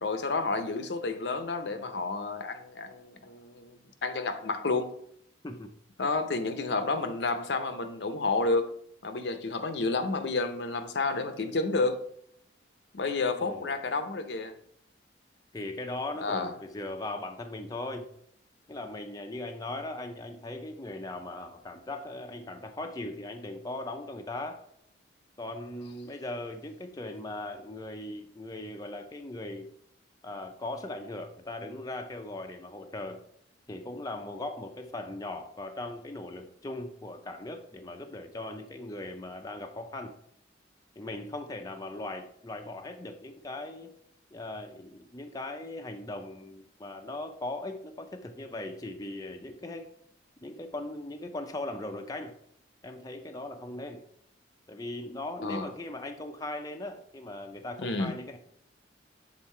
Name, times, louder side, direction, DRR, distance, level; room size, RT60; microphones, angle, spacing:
voice 1, 0.0-4.9 6.0-8.7 9.0-12.1 12.9-14.5 16.2-16.5 55.4-55.7 57.8-58.2, left 3 dB, 65° left, 0.7 m, -30 dB
voice 2, 13.4-13.7 15.5-18.1 18.7-24.6 25.4-29.7 30.2-33.2 33.7-40.1 41.0-44.0 44.3-49.9 50.4-52.3 52.8-54.0 54.7-58.4, left 2 dB, 20° left, 0.5 m, -39 dB
7.3 x 4.0 x 4.4 m
head